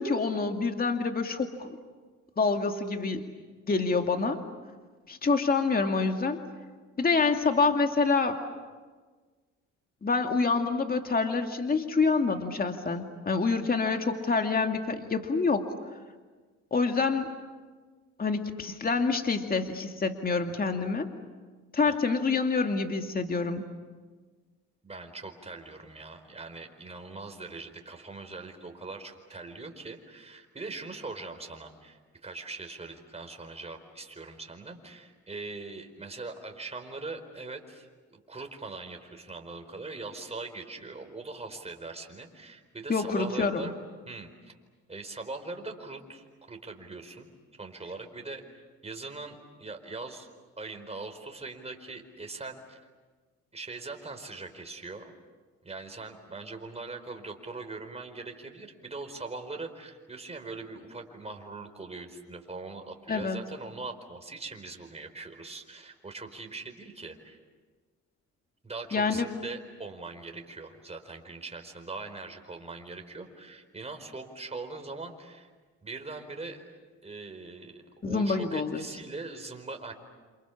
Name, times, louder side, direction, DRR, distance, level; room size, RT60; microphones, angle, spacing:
voice 1, 0.0-1.7 2.4-3.2 3.7-4.4 5.1-6.4 7.0-8.4 10.0-15.7 16.7-17.3 18.2-21.1 21.7-23.7 42.9-43.7 63.1-63.4 68.9-69.3 78.0-78.8, left 4 dB, 30° left, 5 dB, 2.3 m, -27 dB
voice 2, 24.8-43.7 44.1-44.5 44.9-47.3 47.6-50.3 50.6-52.8 53.5-55.1 55.6-67.4 68.6-75.5 75.8-76.7 77.0-79.9, right 3 dB, 20° right, 4 dB, 4.6 m, -41 dB
28.5 x 28.0 x 7.2 m, 1.4 s
cardioid pair, 90°, 30 cm